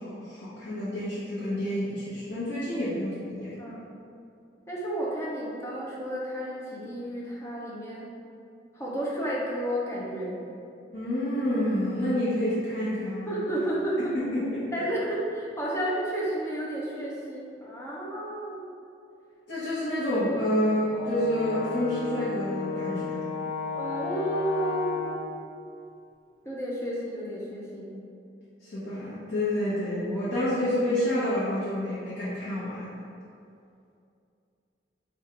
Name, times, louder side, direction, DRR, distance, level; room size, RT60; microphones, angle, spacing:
voice 1, 0.0-3.5 10.9-13.3 14.1-14.7 19.5-23.2 28.6-32.9, left 1 dB, 80° left, -12 dB, 1.0 m, -28 dB
voice 2, 4.7-8.1 8.7-10.4 13.3-14.2 14.7-18.6 23.7-25.2 26.4-27.9, right 1 dB, 15° left, -6 dB, 0.7 m, -31 dB
Brass instrument, 20.9-25.3, left 6 dB, 10° right, 0.9 m, -33 dB
3.7 x 2.4 x 4.3 m, 2.6 s
head